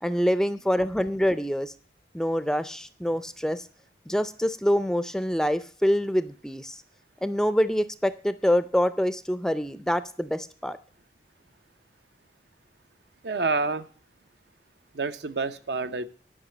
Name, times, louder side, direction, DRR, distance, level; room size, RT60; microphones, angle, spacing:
voice 1, 0.0-1.7 2.1-3.6 4.1-6.8 7.2-10.8, equal, 5° left, 0.4 m, -25 dB
voice 2, 13.2-13.8 14.9-16.1, right 3 dB, 75° right, 0.8 m, -28 dB
11.0 x 5.7 x 7.8 m
head